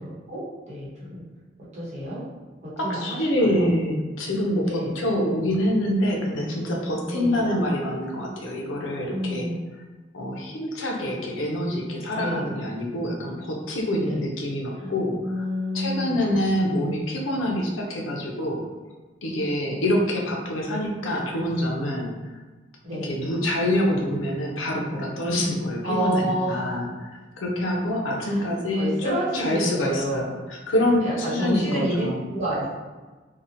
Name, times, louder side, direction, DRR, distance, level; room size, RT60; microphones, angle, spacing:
voice 1, 0.0-1.3 1.7-2.2 2.6-3.7 4.6-4.9 7.0-7.4 9.1-9.7 12.1-12.5 14.0-14.2 14.8-14.9 15.2-16.4 22.8-23.1 25.8-26.8 28.2-28.5 28.8-30.3 31.0-32.7, right 1 dB, 35° right, -8 dB, 0.8 m, -29 dB
voice 2, 2.8-9.5 10.1-15.5 15.7-18.6 19.2-22.1 23.0-30.3 30.7-32.2, left 1 dB, 90° left, -1 dB, 0.5 m, -26 dB
2.8 x 2.1 x 2.6 m, 1.3 s
head